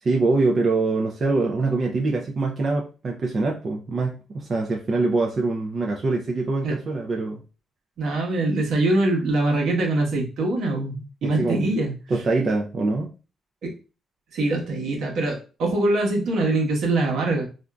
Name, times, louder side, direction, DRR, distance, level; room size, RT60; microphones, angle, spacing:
voice 1, 0.0-7.4 11.2-11.7 12.1-13.1, right 3 dB, 45° right, 0 dB, 0.5 m, -24 dB
voice 2, 8.0-11.9 13.6-13.7 14.3-17.5, right 2 dB, 75° right, -1 dB, 1.0 m, -23 dB
3.6 x 2.5 x 2.2 m, 0.34 s
cardioid pair, 90°, 0 cm